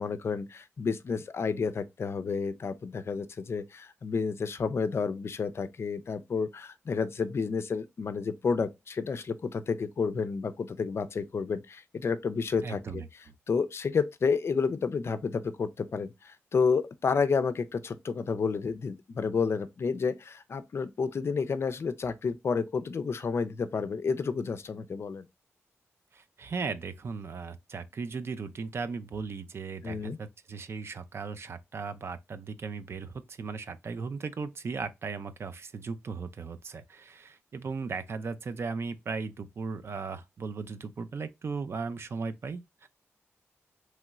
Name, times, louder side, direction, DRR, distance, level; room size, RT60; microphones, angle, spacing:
voice 1, 0.0-13.0 13.5-25.3 29.8-30.2, left 5 dB, 55° left, 0.3 m, -30 dB
voice 2, 12.6-13.1 26.1-42.9, right 4 dB, 55° right, 0.3 m, -37 dB
3.0 x 2.9 x 2.3 m
cardioid pair, 65°, 5 cm